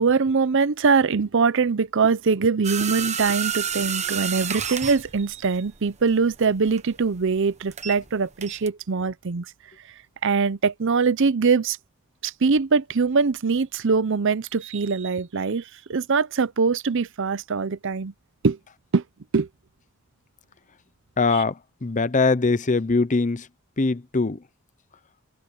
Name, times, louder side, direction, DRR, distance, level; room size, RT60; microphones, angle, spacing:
voice 1, 0.0-9.5 10.2-11.8 12.2-18.1 18.4-18.6 18.9-19.0 19.3-19.5, right 5 dB, 65° right, 0.6 m, -22 dB
sound 1, 2.6-8.1 8.4-8.7, right 8 dB, 35° right, 1.1 m, -30 dB
voice 2, 21.2-23.5 23.8-24.4, left 3 dB, 35° left, 0.8 m, -22 dB
head